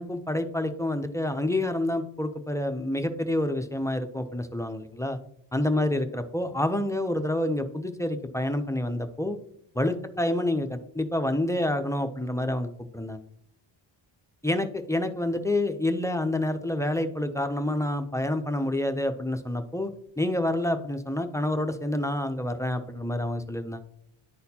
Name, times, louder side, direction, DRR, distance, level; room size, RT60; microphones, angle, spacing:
voice 1, 0.0-5.2 5.5-9.4 9.8-13.2 14.4-19.9 20.2-23.8, left 1 dB, 5° left, 6 dB, 0.4 m, -28 dB
10.5 x 4.1 x 2.8 m, 0.69 s
wide cardioid pair, 105°, 49 cm